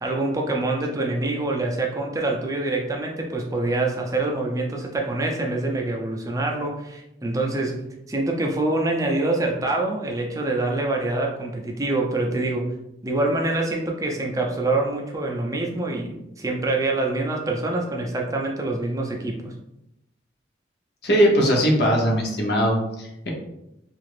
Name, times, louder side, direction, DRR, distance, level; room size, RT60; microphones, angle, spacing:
voice 1, 0.0-7.8 8.1-12.7 13.0-19.5, right 2 dB, 15° right, 0 dB, 0.4 m, -25 dB
voice 2, 21.0-23.3, equal, 55° left, 0 dB, 0.8 m, -20 dB
2.9 x 2.4 x 3.2 m, 0.85 s
head